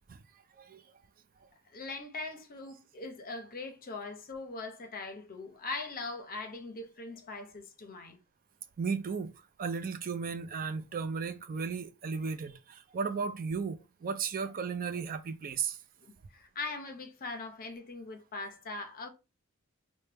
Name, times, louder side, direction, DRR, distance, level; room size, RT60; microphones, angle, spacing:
voice 1, 1.7-8.2 16.0-19.1, left 3 dB, 40° left, 0.6 m, -41 dB
voice 2, 8.8-9.3 9.6-15.8, right 5 dB, 40° right, 0.4 m, -35 dB
4.4 x 2.2 x 3.3 m
head